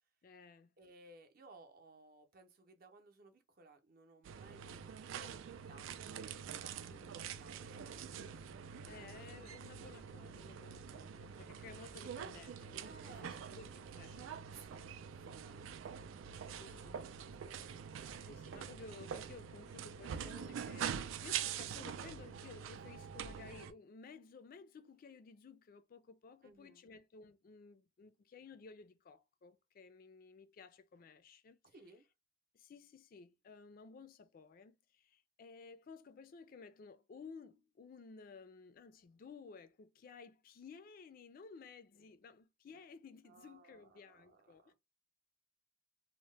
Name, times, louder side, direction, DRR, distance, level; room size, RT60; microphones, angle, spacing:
voice 1, 0.2-0.8 6.9-7.2 8.9-14.5 16.5-17.1 18.2-31.6 32.5-44.7, left 5 dB, 45° left, 0.3 m, -56 dB
voice 2, 0.8-5.3 5.6-5.9 6.1-7.0 7.3-8.5 8.8-9.0 9.3-9.4 12.8-13.4 14.5-14.8 15.2-16.0 16.7-18.1 26.4-26.9 31.6-32.1 43.2-44.7, right 3 dB, 50° right, 0.6 m, -61 dB
sound 1, 4.2-23.7, right 8 dB, 85° right, 0.3 m, -45 dB
2.8 x 2.0 x 3.1 m
head